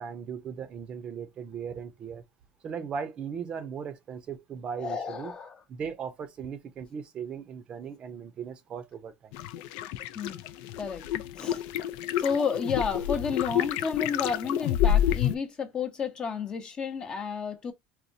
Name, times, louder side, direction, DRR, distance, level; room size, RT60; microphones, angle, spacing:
voice 1, 0.0-2.2 2.6-5.3 5.7-9.4, right 7 dB, 35° right, 0.6 m, -38 dB
voice 2, 4.8-5.6 10.1-10.4 10.8-11.1 11.3-11.6 12.2-17.7, left 6 dB, 30° left, 0.7 m, -31 dB
sound 1, 9.3-15.3, left 10 dB, 70° left, 0.4 m, -28 dB
4.1 x 2.2 x 2.6 m
supercardioid pair, 130°, 3 cm